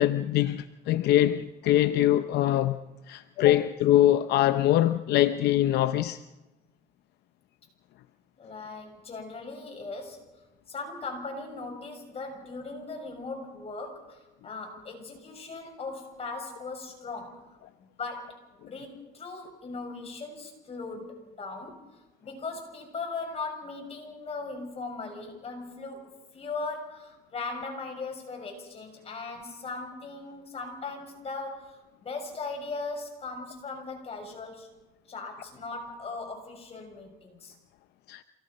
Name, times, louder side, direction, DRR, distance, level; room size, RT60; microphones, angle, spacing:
voice 1, 0.0-2.8 3.1-6.2 38.1-38.2, left 13 dB, 75° left, 0.7 m, -23 dB
voice 2, 8.4-10.2 10.7-17.4 17.8-18.4 18.7-34.7 35.1-37.5, left 3 dB, 35° left, 6.7 m, -39 dB
27.5 x 18.0 x 5.5 m
cardioid pair, 110°, 17 cm